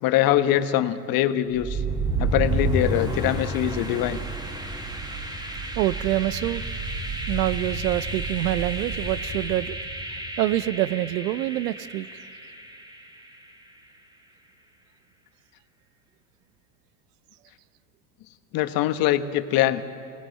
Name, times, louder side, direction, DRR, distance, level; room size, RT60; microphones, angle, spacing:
voice 1, 0.0-1.8 2.2-4.2 18.5-19.8, left 12 dB, 45° left, 11 dB, 1.3 m, -23 dB
sound 1, 1.5-13.4, right 2 dB, 10° right, 2.4 m, -30 dB
voice 2, 5.8-6.6 7.3-9.8 10.4-12.2, right 15 dB, 70° right, 18 dB, 0.8 m, -26 dB
24.0 x 19.0 x 7.8 m, 2.6 s
hypercardioid pair, 95°, 49 cm